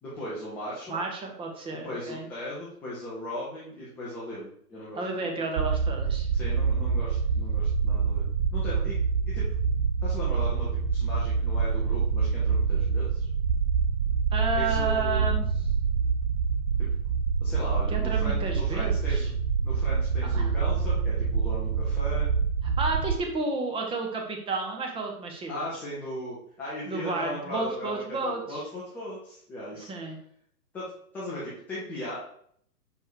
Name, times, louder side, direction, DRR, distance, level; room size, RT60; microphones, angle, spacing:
voice 1, 0.0-1.0 1.7-5.3 6.3-8.2 8.5-9.0 9.3-9.5 10.0-13.3 14.5-15.3 17.4-19.3 19.6-22.3 25.5-29.9 30.7-32.1, left 1 dB, 5° left, -8 dB, 0.4 m, -38 dB
voice 2, 0.9-2.3 4.9-6.3 14.3-15.4 17.9-19.3 20.3-20.5 22.6-25.6 26.9-28.6 29.9-30.2, right 3 dB, 10° right, 2 dB, 1.0 m, -31 dB
sound 1, 5.6-23.1, right 5 dB, 50° right, 1.0 m, -26 dB
5.3 x 4.4 x 4.8 m, 0.65 s
figure-of-eight pair, 115°, 47 cm